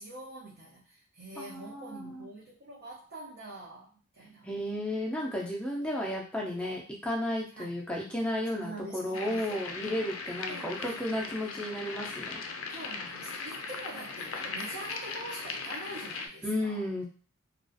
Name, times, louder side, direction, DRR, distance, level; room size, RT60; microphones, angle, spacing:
voice 1, 0.0-4.5 7.6-7.7 8.6-9.7 10.5-11.2 12.7-16.9, right 1 dB, 50° right, -5 dB, 0.5 m, -45 dB
voice 2, 1.4-2.3 4.4-12.4 16.4-17.0, left 1 dB, 5° left, -3 dB, 0.4 m, -33 dB
sound 1, 9.1-16.3, left 4 dB, 70° left, 0.4 m, -39 dB
2.4 x 2.3 x 2.5 m, 0.39 s
head